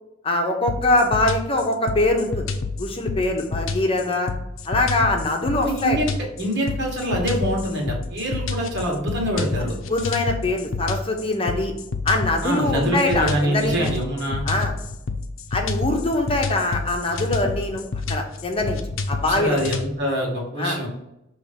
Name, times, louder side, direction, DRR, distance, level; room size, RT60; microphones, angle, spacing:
voice 1, 0.2-2.5 2.8-4.3 4.7-6.0 9.9-11.7 12.0-13.8 14.4-14.7 15.5-17.8 18.1-18.8 19.1-19.6 20.6-20.8, left 2 dB, 30° left, 3 dB, 0.9 m, -23 dB
sound 1, 0.7-19.9, left 3 dB, 70° left, 0.6 m, -28 dB
voice 2, 5.6-6.1 6.4-9.8 12.4-14.4 19.2-20.9, right 1 dB, 60° right, -1 dB, 1.8 m, -25 dB
6.1 x 3.1 x 5.2 m, 0.86 s
head